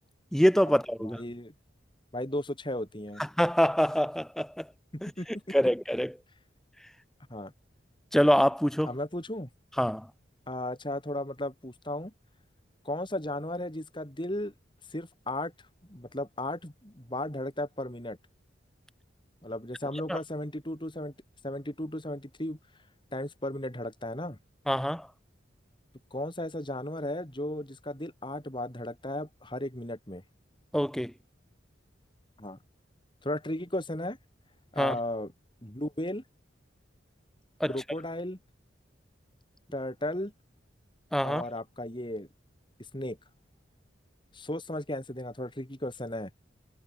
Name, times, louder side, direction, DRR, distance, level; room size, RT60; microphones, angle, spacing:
voice 1, 0.3-1.2 3.4-4.7 5.0-5.1 5.5-6.1 8.1-8.9 9.8-10.1 20.1-20.2 24.7-25.1 30.7-31.1 34.8-35.0 37.6-37.8 41.1-41.4, equal, ahead, 0.9 m, -25 dB
voice 2, 1.0-1.5 2.1-3.2 4.9-5.3 7.3-7.5 8.9-9.5 10.5-12.1 12.8-14.5 14.9-15.5 15.9-18.2 19.4-21.1 21.4-22.6 23.1-24.4 26.1-30.2 32.4-32.6 33.2-34.2 34.7-35.3 35.6-36.2 37.7-38.4 39.7-40.3 41.2-42.3 42.9-43.2 44.3-46.3, left 1 dB, 25° left, 3.9 m, -35 dB
head